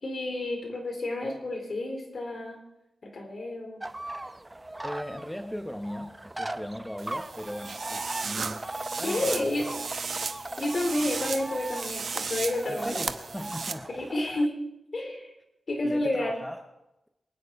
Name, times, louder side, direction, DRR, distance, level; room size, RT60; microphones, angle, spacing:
voice 1, 0.0-2.6 3.0-3.8 9.0-9.7 10.6-13.1 13.9-14.7 14.9-15.3 15.7-16.3, left 1 dB, 50° left, 2 dB, 3.9 m, -30 dB
sound 1, 3.8-14.5, right 1 dB, 15° right, 0.6 m, -39 dB
voice 2, 4.8-8.6 9.0-9.6 12.7-14.1 15.8-16.6, equal, 5° left, 6 dB, 0.9 m, -38 dB
sound 2, 7.0-13.7, right 5 dB, 60° right, 0.9 m, -35 dB
23.5 x 9.5 x 4.7 m, 0.92 s
wide cardioid pair, 95°, 0 cm